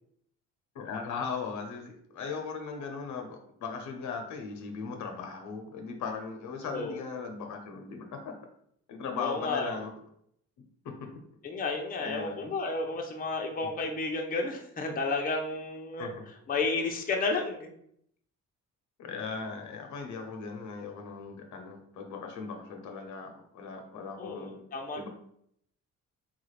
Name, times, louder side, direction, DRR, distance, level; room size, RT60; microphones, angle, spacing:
voice 1, 0.7-8.3 8.9-9.9 12.0-12.5 16.0-16.1 19.0-24.7 24.9-25.1, left 5 dB, 75° left, 3 dB, 0.7 m, -38 dB
voice 2, 6.6-7.0 9.2-9.7 11.4-16.1 16.5-17.7 24.2-25.0, left 3 dB, 30° left, 2 dB, 0.6 m, -32 dB
3.5 x 2.4 x 3.2 m, 0.70 s
cardioid pair, 90°, 30 cm